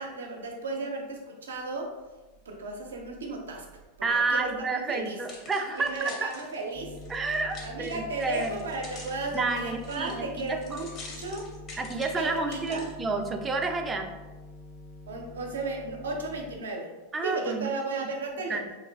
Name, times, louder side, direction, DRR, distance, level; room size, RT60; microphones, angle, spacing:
voice 1, 0.0-2.0 2.5-5.2 5.7-7.0 7.6-11.5 12.2-12.9 15.1-16.9 17.2-18.6, right 3 dB, 80° right, 1 dB, 0.5 m, -34 dB
voice 2, 4.0-6.3 7.1-8.5 9.3-10.1 10.5-10.8 11.8-14.1 17.1-17.8 18.5-18.7, right 3 dB, 20° right, 4 dB, 0.3 m, -30 dB
sound 1, 4.9-12.9 13.5-13.7, left 3 dB, 40° left, 0.8 m, -47 dB
sound 2, 6.7-16.6, left 2 dB, 60° left, 0.9 m, -45 dB
3.0 x 2.3 x 2.3 m, 1.2 s
hypercardioid pair, 95°, 0 cm